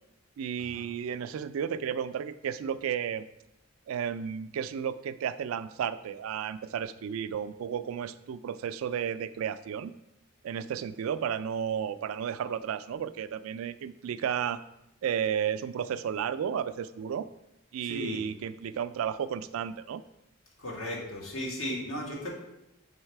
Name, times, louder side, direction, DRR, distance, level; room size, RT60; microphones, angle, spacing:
voice 1, 0.4-3.3 3.9-9.9 10.4-14.6 15.0-17.3 17.7-20.0, right 8 dB, 80° right, 13 dB, 0.3 m, -33 dB
voice 2, 17.8-18.2 20.6-22.3, equal, 85° left, -2 dB, 1.7 m, -35 dB
5.5 x 4.0 x 4.5 m, 0.87 s
head